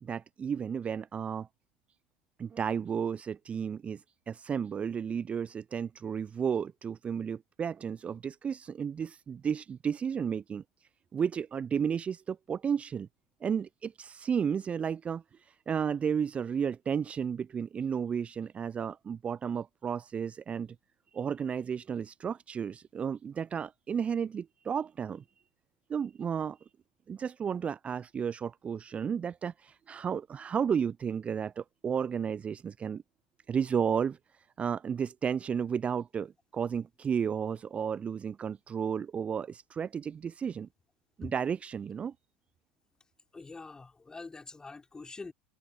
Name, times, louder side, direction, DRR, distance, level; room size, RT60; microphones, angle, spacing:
voice 1, 0.0-1.5 2.4-4.0 4.3-10.6 11.1-13.1 13.4-20.7 21.1-25.2 25.9-26.6 27.1-33.0 33.5-34.2 34.6-40.7 41.2-42.1, right 7 dB, 25° right, 0.6 m, -33 dB
voice 2, 43.3-45.3, left 3 dB, 15° left, 5.8 m, -45 dB
figure-of-eight pair, 75°, 5 cm